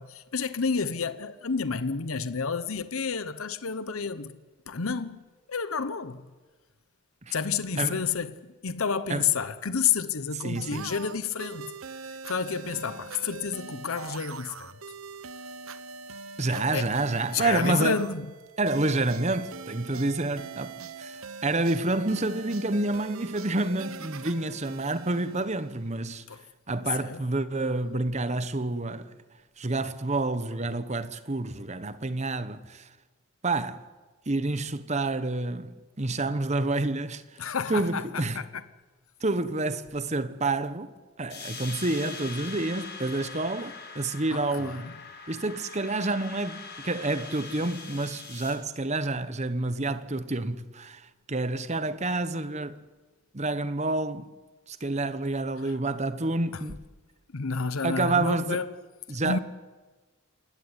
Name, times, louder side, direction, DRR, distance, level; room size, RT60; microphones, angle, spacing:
voice 1, 0.0-4.4 4.7-5.2 5.5-6.2 7.3-11.7 12.1-14.7 16.5-16.9 17.3-18.3 26.3-26.4 27.0-27.2 37.4-38.4 44.3-44.9 56.5-56.6 57.3-58.7 59.2-59.4, left 6 dB, 70° left, 0.9 m, -30 dB
voice 2, 10.4-10.9 16.4-18.0 18.6-26.2 26.7-29.1 29.6-32.9 33.4-33.9 34.3-37.2 37.7-38.4 39.2-40.9 41.2-44.9 45.3-51.0 51.3-52.8 53.3-54.3 54.7-56.8 57.8-58.6 59.1-59.4, right 2 dB, 30° right, 1.0 m, -29 dB
sound 1, 10.5-26.0, right 5 dB, 70° right, 1.0 m, -42 dB
sound 2, 41.3-48.5, left 4 dB, 50° left, 5.9 m, -42 dB
27.0 x 16.0 x 9.8 m
head